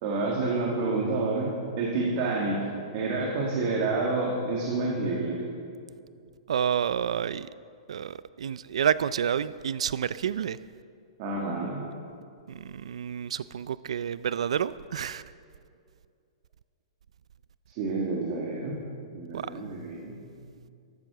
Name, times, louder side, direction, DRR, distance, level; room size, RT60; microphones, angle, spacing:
voice 1, 0.0-1.5 1.8-2.6 2.9-5.4 11.2-11.9 17.8-18.7 19.1-20.2, right 3 dB, 30° right, -2 dB, 1.8 m, -28 dB
voice 2, 6.5-7.5 7.9-10.6 12.5-15.2 19.3-19.5, right 8 dB, 90° right, 16 dB, 0.4 m, -29 dB
14.0 x 11.5 x 6.8 m, 2.3 s
hypercardioid pair, 180°, 3 cm